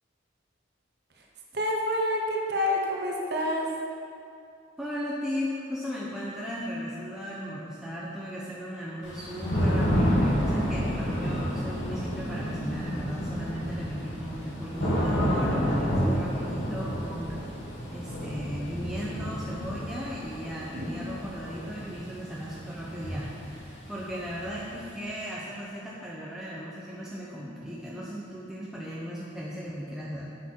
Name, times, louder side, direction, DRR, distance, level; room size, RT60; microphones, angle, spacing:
voice 1, 1.5-3.7 20.7-21.1, left 1 dB, 55° right, -1 dB, 1.1 m, -28 dB
voice 2, 4.8-17.6 17.9-30.2, equal, 5° right, -6 dB, 0.7 m, -36 dB
Thunder / Rain, 9.0-24.8, equal, 85° left, 2.3 m, -30 dB
8.5 x 7.8 x 4.6 m, 2.6 s
head